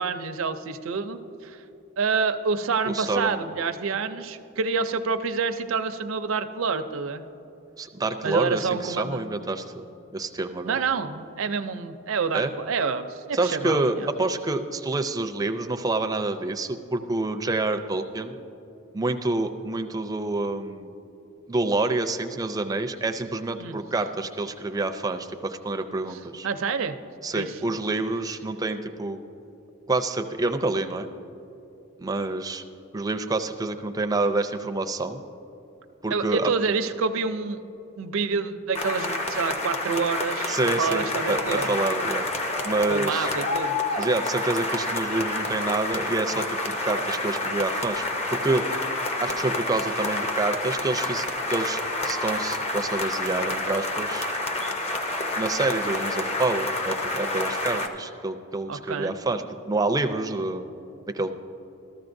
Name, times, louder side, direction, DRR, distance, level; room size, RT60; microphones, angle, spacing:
voice 1, 0.0-1.6 2.0-7.2 8.2-9.2 10.6-14.1 23.6-23.8 26.4-26.9 27.3-27.5 36.1-37.6 38.0-41.7 42.9-43.8 58.7-59.1, right 5 dB, 80° right, 8 dB, 0.5 m, -28 dB
voice 2, 2.8-3.5 7.8-9.9 10.1-10.7 12.3-12.5 13.3-18.3 18.9-20.9 21.5-26.5 27.2-29.2 29.9-31.1 32.0-32.6 32.9-35.2 36.0-36.5 40.5-42.3 42.6-43.3 44.0-48.0 48.3-48.7 49.2-54.3 55.4-60.6 61.1-61.3, right 2 dB, 20° right, 6 dB, 0.4 m, -27 dB
sound 1, 38.7-57.9, left 2 dB, 30° left, 0.7 m, -28 dB
14.0 x 13.5 x 2.6 m, 3.0 s
head